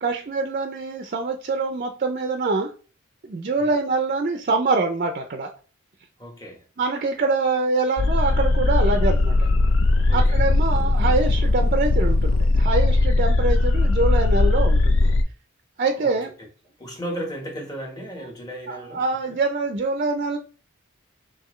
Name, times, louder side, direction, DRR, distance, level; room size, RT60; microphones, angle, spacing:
voice 1, 0.0-2.7 3.2-5.5 6.8-9.5 10.1-15.1 15.8-16.3 18.7-20.4, right 3 dB, 45° right, 0.5 m, -24 dB
voice 2, 6.2-6.6 10.1-10.4 16.0-16.1 16.8-19.0 19.3-19.4, equal, 20° left, 1.2 m, -35 dB
sound 1, 8.0-15.2, left 2 dB, 65° left, 0.5 m, -19 dB
5.8 x 2.8 x 3.1 m
head